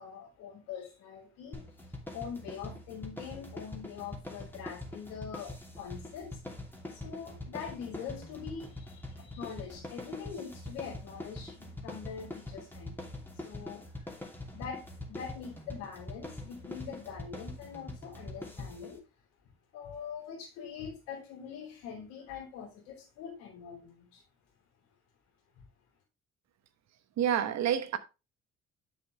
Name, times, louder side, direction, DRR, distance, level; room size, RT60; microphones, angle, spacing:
voice 1, 0.0-6.4 6.9-13.0 13.3-14.1 14.5-19.0 19.7-24.2, left 7 dB, 90° left, 3.3 m, -44 dB
sound 1, 1.5-19.0, left 1 dB, 5° left, 2.6 m, -44 dB
voice 2, 27.2-28.0, right 9 dB, 65° right, 1.1 m, -28 dB
7.6 x 6.9 x 3.2 m
hypercardioid pair, 55°, 29 cm